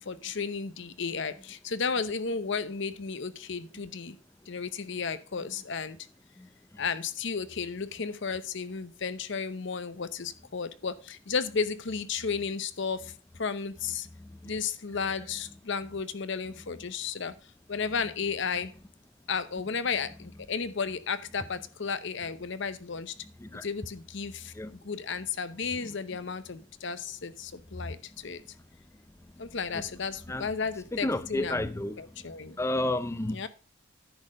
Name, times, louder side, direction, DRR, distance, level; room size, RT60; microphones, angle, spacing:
voice 1, 0.0-4.2 4.5-6.0 6.8-13.1 13.4-14.1 14.4-17.4 17.7-18.7 19.3-23.1 23.6-28.4 29.4-31.7 32.0-32.6 33.3-33.5, left 5 dB, 60° left, 0.7 m, -33 dB
voice 2, 30.9-32.0 32.6-33.4, left 1 dB, 15° left, 0.4 m, -31 dB
10.5 x 4.3 x 6.2 m
head